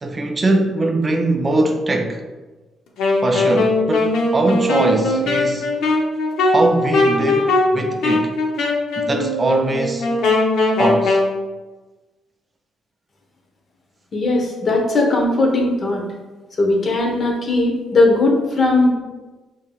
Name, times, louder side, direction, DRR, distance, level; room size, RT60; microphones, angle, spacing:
voice 1, 0.0-2.3 3.2-5.7 6.5-8.3 9.0-10.1 10.8-11.2, right 2 dB, 25° right, 0.3 m, -21 dB
Wind instrument woodwind instrument, 3.0-11.3, left 2 dB, 80° left, 0.6 m, -19 dB
voice 2, 14.1-16.0 16.6-18.9, left 2 dB, 45° left, 0.8 m, -18 dB
5.1 x 2.7 x 2.3 m
cardioid pair, 90°, 0 cm